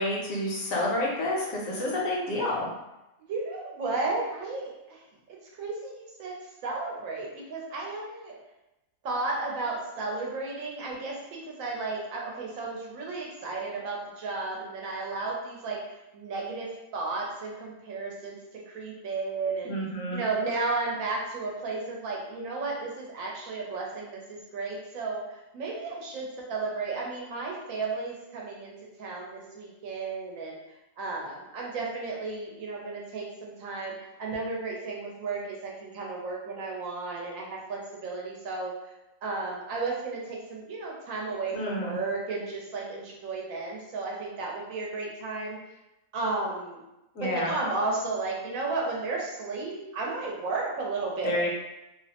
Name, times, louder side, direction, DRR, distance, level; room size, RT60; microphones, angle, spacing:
voice 1, 0.0-2.7 19.6-20.2 41.5-42.0 47.1-47.5 51.2-51.5, left 1 dB, 70° left, -3 dB, 1.0 m, -29 dB
voice 2, 3.3-5.0 5.6-6.4 6.6-8.4 9.0-15.8 16.1-19.7 20.1-28.7 29.0-30.6 31.0-38.7 39.2-45.6 46.1-46.8 47.2-51.5, right 3 dB, 75° right, -2 dB, 1.0 m, -33 dB
2.7 x 2.0 x 2.8 m, 0.95 s
omnidirectional pair, 1.5 m